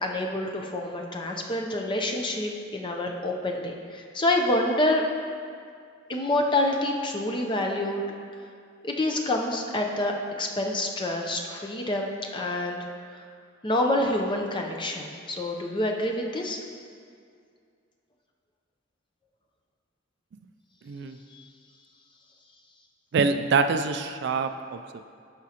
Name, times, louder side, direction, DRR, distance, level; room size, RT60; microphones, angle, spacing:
voice 1, 0.0-5.0 6.1-8.0 8.8-12.8 13.6-16.6 21.3-21.4, left 1 dB, 25° left, 1 dB, 0.6 m, -27 dB
voice 2, 20.8-21.2 23.1-25.0, right 4 dB, 60° right, 8 dB, 0.3 m, -25 dB
12.0 x 5.0 x 2.8 m, 2.2 s
head